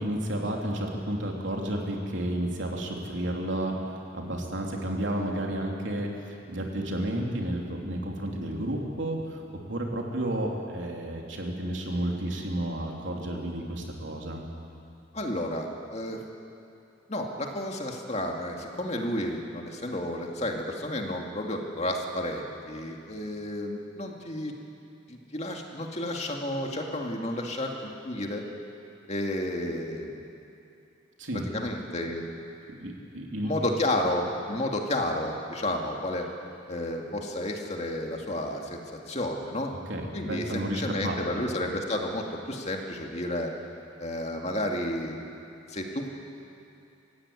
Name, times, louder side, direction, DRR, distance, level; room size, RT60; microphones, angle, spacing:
voice 1, 0.0-3.8 4.1-14.4 31.2-31.4 32.8-33.5 39.9-41.2, right 1 dB, 70° right, 0 dB, 3.5 m, -31 dB
voice 2, 15.1-16.2 17.1-24.5 25.1-28.4 29.1-30.2 31.5-32.3 33.4-36.3 36.7-39.7 40.1-43.5 44.0-45.2 45.7-46.1, left 1 dB, 35° left, 1 dB, 2.3 m, -31 dB
25.0 x 16.0 x 9.9 m, 2.7 s
head